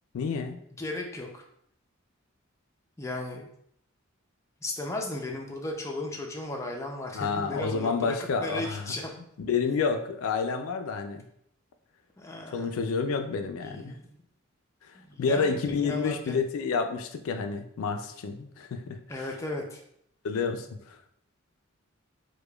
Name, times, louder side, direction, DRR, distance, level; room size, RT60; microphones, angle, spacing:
voice 1, 0.1-0.6 7.1-8.9 9.4-11.2 12.5-14.0 15.2-19.0 20.2-21.0, left 5 dB, 85° left, 7 dB, 0.4 m, -29 dB
voice 2, 0.8-1.4 3.0-3.5 4.6-8.1 8.4-9.1 12.2-12.7 13.6-14.2 14.9-16.4 19.1-19.8, left 2 dB, 15° left, 0 dB, 0.4 m, -35 dB
4.8 x 2.2 x 2.2 m, 0.70 s
head